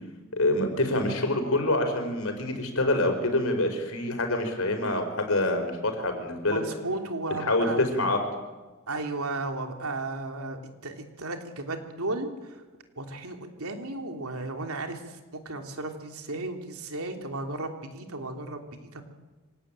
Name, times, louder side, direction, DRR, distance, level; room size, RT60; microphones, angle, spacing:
voice 1, 0.3-6.6 7.4-8.2, left 1 dB, 65° left, 6 dB, 5.0 m, -26 dB
voice 2, 6.5-7.8 8.9-12.6 13.0-19.0, right 2 dB, 80° right, 4 dB, 3.2 m, -34 dB
25.5 x 18.0 x 9.0 m, 1.2 s
head